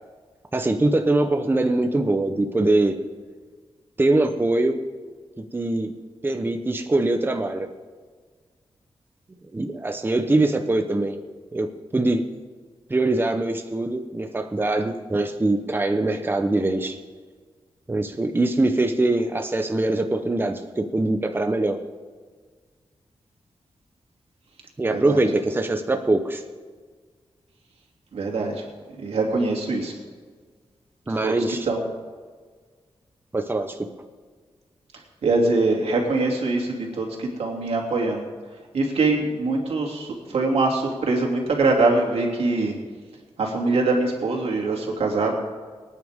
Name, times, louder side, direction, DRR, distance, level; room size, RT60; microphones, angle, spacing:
voice 1, 0.5-3.0 4.0-4.8 5.5-5.9 6.2-7.7 9.5-11.2 11.5-12.2 12.9-17.0 17.9-21.8 24.8-26.4 31.1-31.7 33.3-33.8, right 2 dB, 20° right, 6 dB, 0.8 m, -23 dB
voice 2, 28.1-28.5 29.0-29.9 31.2-31.3 31.7-31.8 35.2-38.3 38.7-42.7 43.4-45.3, right 3 dB, 85° right, 0 dB, 2.8 m, -23 dB
24.0 x 9.6 x 3.7 m, 1.5 s
wide cardioid pair, 105°, 10 cm